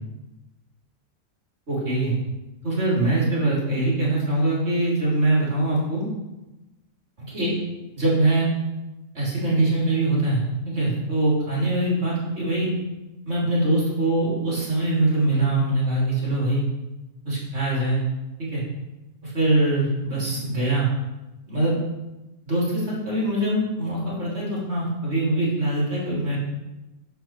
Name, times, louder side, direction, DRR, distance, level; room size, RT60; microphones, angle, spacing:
voice 1, 1.7-2.1 2.6-6.1 7.3-7.5 7.9-8.5 9.1-12.7 13.2-16.6 17.2-18.0 18.4-18.6 19.2-20.9 21.5-21.8 22.4-26.4, right 2 dB, 45° right, -5 dB, 3.2 m, -23 dB
9.3 x 7.1 x 4.4 m, 1.0 s
omnidirectional pair, 1.6 m